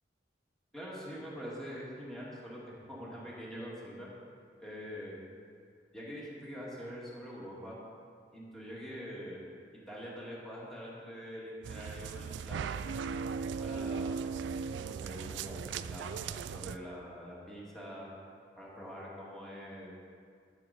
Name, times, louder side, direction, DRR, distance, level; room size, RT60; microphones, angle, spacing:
voice 1, 0.7-4.1 4.6-5.2 5.9-7.8 8.3-9.4 9.9-12.9 13.6-14.2 14.8-18.1 18.6-19.9, equal, 5° left, -7 dB, 2.2 m, -44 dB
sound 1, 11.6-16.8, right 5 dB, 80° right, 0.3 m, -37 dB
13.5 x 6.4 x 4.3 m, 2.2 s
head